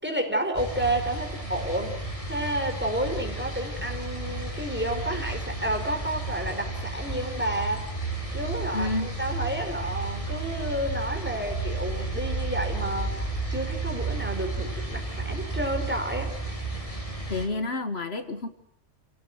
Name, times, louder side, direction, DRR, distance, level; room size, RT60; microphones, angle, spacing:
voice 1, 0.0-7.9 8.3-16.3, right 1 dB, 10° right, 4 dB, 4.5 m, -30 dB
sound 1, 0.5-17.5, right 3 dB, 30° left, 5.7 m, -32 dB
voice 2, 8.7-9.1 17.3-18.5, left 2 dB, 60° left, 9 dB, 1.7 m, -29 dB
29.5 x 17.5 x 9.3 m, 0.68 s
omnidirectional pair, 1.2 m